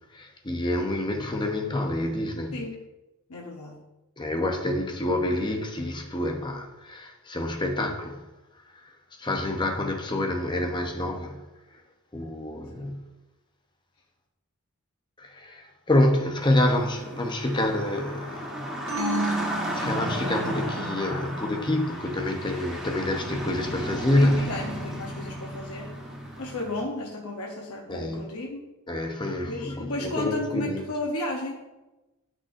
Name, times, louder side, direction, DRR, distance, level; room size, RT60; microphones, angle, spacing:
voice 1, 0.1-2.6 4.2-8.2 9.2-11.4 12.1-13.0 15.2-18.9 19.2-24.5 27.9-28.3 28.9-30.8, left 1 dB, 20° left, 0.7 m, -27 dB
voice 2, 2.5-2.8 3.3-3.9 12.8-12.9 24.2-26.0 26.4-28.7 29.4-31.8, left 1 dB, 80° left, 0.9 m, -34 dB
sound 1, 16.4-26.8, equal, 5° right, 1.2 m, -35 dB
sound 2, 18.9-20.6, right 2 dB, 70° right, 1.5 m, -30 dB
10.5 x 6.2 x 2.6 m
head